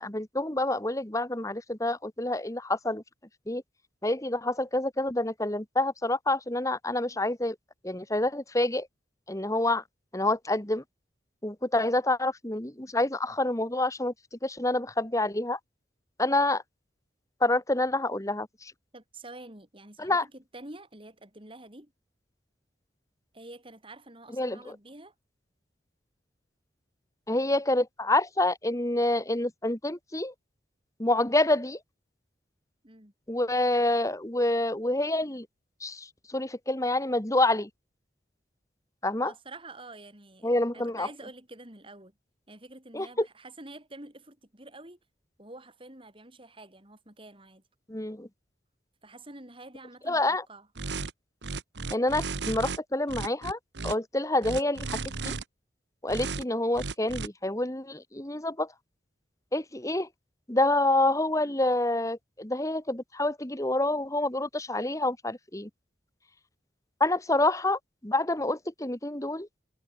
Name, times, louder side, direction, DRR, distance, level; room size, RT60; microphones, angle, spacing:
voice 1, 0.0-3.0 3.5-3.6 4.0-7.6 7.8-8.9 9.3-9.8 10.1-10.8 11.4-14.1 14.4-15.6 16.2-16.6 17.4-18.7 20.0-20.2 24.3-24.6 27.3-30.3 31.0-31.8 33.3-35.5 35.8-37.7 39.0-39.3 40.4-41.1 42.9-43.3 47.9-48.3 50.1-50.4 51.9-55.3 56.0-58.7 59.5-60.1 60.5-65.7 67.0-69.5, left 2 dB, 20° left, 2.2 m, -27 dB
voice 2, 18.9-21.9 23.3-25.1 32.8-33.1 39.2-42.1 42.5-45.0 45.4-47.6 49.0-50.7, right 2 dB, 30° right, 5.8 m, -48 dB
sound 1, 50.8-51.1 51.4-52.8 53.1-53.9 54.4-55.4 56.1-56.4 56.7-57.3, right 4 dB, 75° right, 1.2 m, -34 dB
head